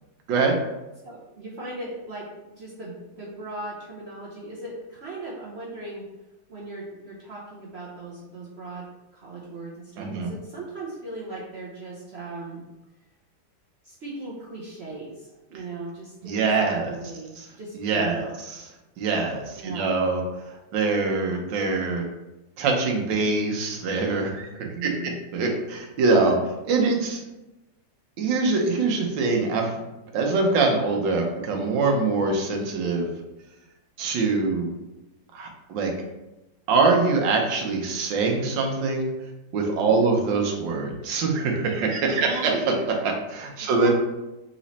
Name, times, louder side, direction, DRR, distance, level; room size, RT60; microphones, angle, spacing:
voice 1, 1.0-6.0 6.5-8.9 9.1-12.6 13.8-18.4 19.5-20.0 24.6-25.1 39.8-40.1 42.1-42.6 43.6-43.9, right 2 dB, 60° right, -5 dB, 0.7 m, -38 dB
voice 2, 10.0-10.3 15.5-15.6 16.2-17.0 17.4-17.5 17.7-18.7 19.0-20.2 20.7-22.0 22.6-27.2 28.2-29.7 30.1-33.1 34.0-34.7 35.3-35.9 36.7-39.1 39.5-43.9, right 3 dB, 75° right, 2 dB, 1.5 m, -24 dB
4.1 x 3.1 x 4.0 m, 1.0 s
omnidirectional pair, 2.1 m